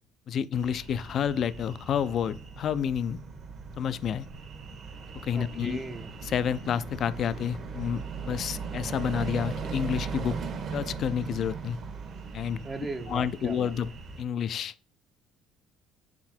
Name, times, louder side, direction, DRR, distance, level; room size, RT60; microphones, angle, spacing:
voice 1, 0.3-3.2 3.8-4.3 5.2-5.8 6.2-10.4 10.7-11.8 12.3-12.6 13.1-13.9 14.2-14.7, left 8 dB, 50° left, 0.3 m, -29 dB
sound 1, 0.5-14.2, right 5 dB, 45° right, 1.2 m, -39 dB
voice 2, 5.4-6.1 12.6-13.7, right 3 dB, 25° right, 0.6 m, -37 dB
6.0 x 4.2 x 4.3 m
cardioid pair, 105°, 0 cm